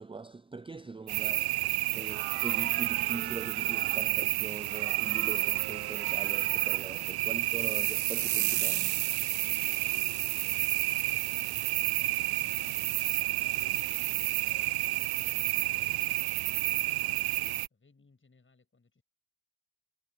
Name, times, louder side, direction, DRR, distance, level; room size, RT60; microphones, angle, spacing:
voice 1, 0.0-1.6 1.9-9.1, right 4 dB, 15° right, 0.6 m, -42 dB
sound 1, 1.1-17.7, right 17 dB, 70° right, 0.5 m, -30 dB
sound 2, 5.0-10.3, right 12 dB, 85° right, 5.6 m, -66 dB
voice 2, 6.7-8.0 9.2-19.0, left 4 dB, 30° left, 8.0 m, -65 dB
cardioid pair, 70°, 39 cm